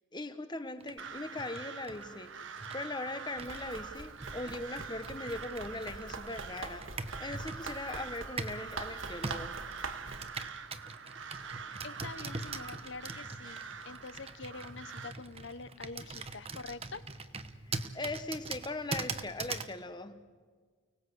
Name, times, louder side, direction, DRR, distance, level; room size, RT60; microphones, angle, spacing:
voice 1, 0.1-9.6 12.0-12.1 13.4-13.5 17.6-20.2, left 2 dB, 20° left, 10 dB, 1.3 m, -40 dB
Computer keyboard, 0.8-8.7 9.2-19.8, right 4 dB, 30° right, 1.0 m, -43 dB
Crow, 1.0-15.1, right 6 dB, 75° right, 1.3 m, -45 dB
Run, 3.4-10.3, right 4 dB, 90° right, 1.7 m, -45 dB
voice 2, 11.8-17.0, left 4 dB, 65° left, 14 dB, 1.0 m, -46 dB
30.0 x 19.5 x 8.1 m, 1.5 s
head